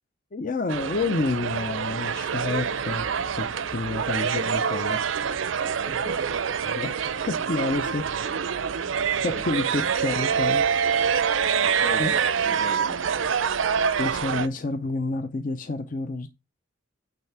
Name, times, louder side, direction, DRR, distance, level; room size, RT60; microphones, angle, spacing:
voice 1, 0.3-3.1 3.4-5.0 6.6-8.3 9.2-10.7 12.0-12.2 14.0-16.3, left 3 dB, 45° left, 0.6 m, -29 dB
sound 1, 0.7-14.5, right 7 dB, 80° right, 0.5 m, -26 dB
voice 2, 5.8-6.4 9.3-9.6 11.6-12.2 12.4-13.3, equal, 85° left, 1.7 m, -38 dB
9.0 x 3.3 x 5.8 m
head